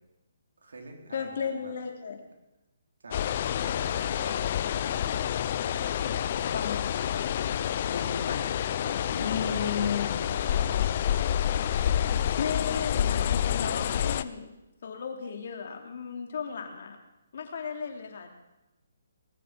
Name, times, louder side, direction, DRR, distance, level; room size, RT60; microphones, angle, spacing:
voice 1, 0.6-1.7 3.0-3.2 3.5-5.3 5.8-6.1 8.8-10.9, right 2 dB, 80° right, 2 dB, 3.9 m, -46 dB
voice 2, 1.1-2.2 6.5-6.8 7.9-8.4 9.1-10.1 12.4-14.5 14.8-17.0 17.3-18.4, left 6 dB, 60° left, 3 dB, 3.0 m, -34 dB
sound 1, 3.1-14.2, left 10 dB, 40° left, 0.6 m, -28 dB
19.5 x 8.6 x 7.5 m, 0.98 s
hypercardioid pair, 155°, 0 cm